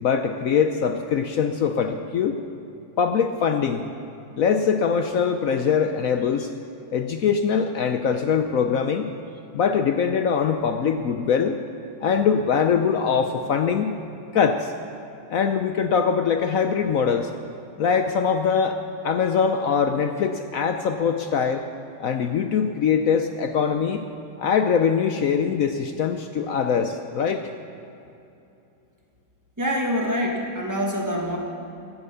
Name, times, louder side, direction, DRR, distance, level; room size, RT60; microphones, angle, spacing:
voice 1, 0.0-2.4 3.0-3.9 4.4-6.5 6.9-9.1 9.5-11.6 12.0-13.9 14.3-14.7 15.3-17.3 17.8-21.7 22.0-24.1 24.4-27.4, left 6 dB, 70° left, 7 dB, 0.8 m, -22 dB
voice 2, 29.6-31.4, equal, 10° right, 0 dB, 1.6 m, -25 dB
16.0 x 8.9 x 6.9 m, 2.8 s
omnidirectional pair, 2.1 m